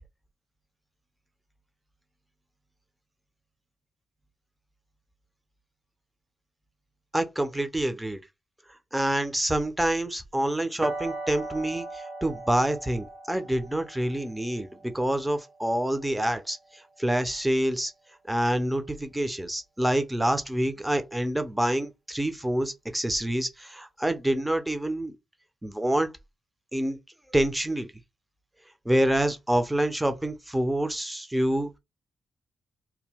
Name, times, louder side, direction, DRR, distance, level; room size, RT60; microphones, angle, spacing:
voice 1, 7.1-8.2 8.9-17.9 18.3-25.2 25.6-26.1 26.7-27.0 27.3-27.9 28.8-31.8, right 1 dB, 10° right, 0.7 m, -27 dB
sound 1, 10.8-16.7, right 2 dB, 60° right, 0.9 m, -39 dB
2.9 x 2.2 x 3.5 m
hypercardioid pair, 40°, 0 cm